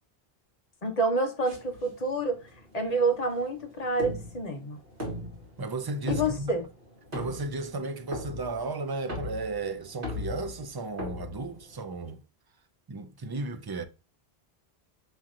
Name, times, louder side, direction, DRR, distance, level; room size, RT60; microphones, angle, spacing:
voice 1, 0.8-2.4 2.7-4.8 6.1-6.6, right 2 dB, 40° left, 1.0 m, -28 dB
sound 1, 1.4-12.1, left 1 dB, 55° right, 2.0 m, -40 dB
voice 2, 5.6-6.5 7.1-12.2 12.9-13.8, right 3 dB, 40° right, 0.3 m, -34 dB
6.3 x 2.8 x 2.4 m
omnidirectional pair, 1.1 m